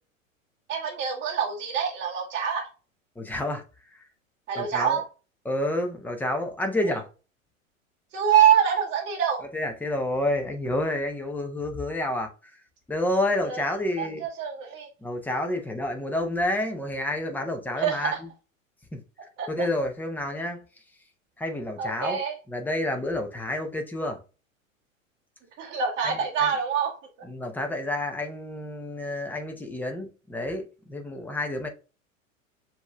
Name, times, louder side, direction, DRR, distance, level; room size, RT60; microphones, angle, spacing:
voice 1, 0.7-2.7 4.5-5.0 6.9-7.0 8.1-9.4 13.4-13.6 14.0-14.9 17.8-18.2 19.4-19.7 21.8-22.3 25.6-26.9, right 8 dB, 25° right, 1.0 m, -25 dB
voice 2, 3.2-3.6 4.6-5.0 5.5-7.1 9.5-12.3 12.9-14.2 15.0-18.3 18.9-19.0 19.5-20.6 21.4-22.2 22.5-24.2 26.0-26.5 27.2-31.7, left 1 dB, 5° left, 0.7 m, -29 dB
7.0 x 2.8 x 2.2 m
figure-of-eight pair, 90°, 41 cm